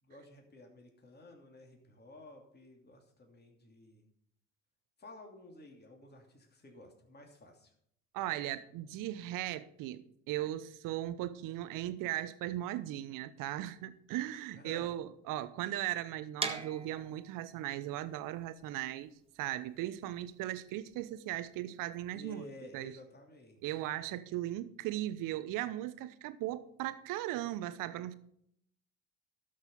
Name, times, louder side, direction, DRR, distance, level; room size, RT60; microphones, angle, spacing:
voice 1, 0.0-4.1 5.0-7.7 14.6-14.9 22.1-23.8, left 1 dB, 25° left, 2.9 m, -53 dB
voice 2, 8.1-19.1 19.4-22.4 22.7-22.9 23.6-28.2, right 14 dB, 55° right, 1.0 m, -38 dB
sound 1, 16.4-22.2, right 4 dB, 15° right, 1.5 m, -43 dB
12.5 x 6.6 x 5.4 m
hypercardioid pair, 70°, 38 cm